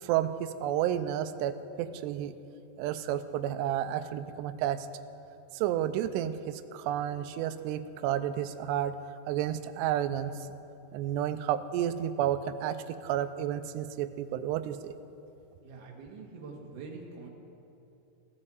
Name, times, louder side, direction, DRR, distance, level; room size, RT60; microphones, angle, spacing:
voice 1, 0.0-2.3 2.8-4.9 5.5-9.0 9.3-10.3 10.9-14.9, right 11 dB, 80° right, 10 dB, 2.6 m, -31 dB
voice 2, 15.6-17.3, right 4 dB, 55° right, 0 dB, 2.7 m, -45 dB
15.5 x 11.0 x 7.6 m, 2.7 s
omnidirectional pair, 5.2 m